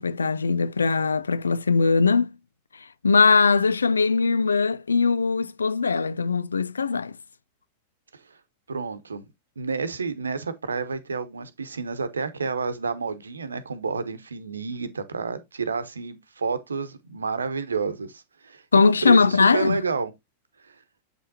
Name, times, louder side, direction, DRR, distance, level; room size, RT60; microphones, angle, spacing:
voice 1, 0.0-2.4 3.0-7.2 18.7-19.8, left 4 dB, 75° left, 0.4 m, -20 dB
voice 2, 8.7-9.3 9.6-20.1 20.6-20.8, right 4 dB, 75° right, 0.9 m, -30 dB
7.9 x 5.4 x 2.7 m
figure-of-eight pair, 90°, 0 cm